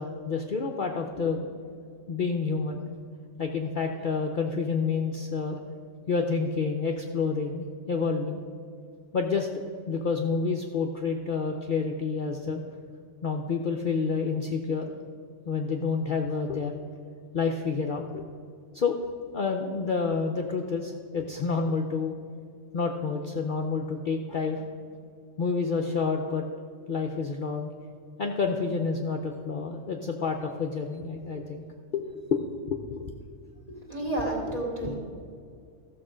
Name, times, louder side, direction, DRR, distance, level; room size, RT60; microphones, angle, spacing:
voice 1, 0.0-1.5 2.1-2.8 3.4-5.6 6.1-8.4 9.1-9.6 9.9-12.6 13.2-14.9 15.5-16.8 17.3-18.3 18.7-19.0 19.3-22.2 22.7-24.7 25.4-26.4 26.9-27.7 28.2-31.6 31.9-33.1, left 4 dB, 50° left, 2 dB, 0.7 m, -29 dB
voice 2, 33.7-34.9, right 1 dB, 30° right, -3 dB, 2.1 m, -31 dB
14.0 x 6.9 x 5.0 m, 2.3 s
omnidirectional pair, 1.3 m